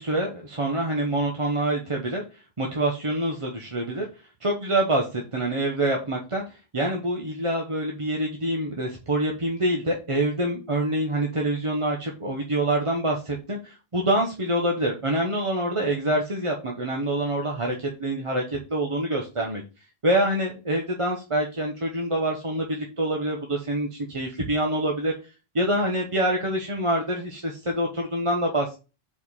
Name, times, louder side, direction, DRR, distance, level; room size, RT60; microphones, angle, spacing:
voice 1, 0.0-4.1 4.4-19.6 20.0-28.7, right 1 dB, 30° right, 0 dB, 1.0 m, -26 dB
4.9 x 4.3 x 5.5 m, 0.32 s
omnidirectional pair, 1.1 m